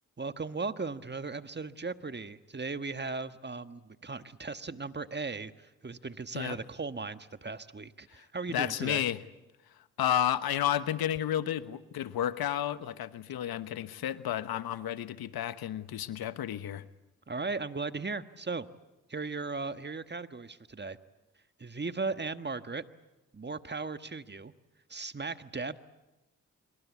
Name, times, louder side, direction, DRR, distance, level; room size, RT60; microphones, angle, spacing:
voice 1, 0.2-9.0 17.3-18.7 19.1-21.0 21.6-22.8 23.3-24.5 24.9-25.8, right 4 dB, 30° right, 10 dB, 1.4 m, -37 dB
voice 2, 8.5-9.2 9.7-16.9, left 11 dB, 75° left, 13 dB, 1.1 m, -32 dB
26.0 x 23.5 x 8.4 m, 1.1 s
supercardioid pair, 45°, 36 cm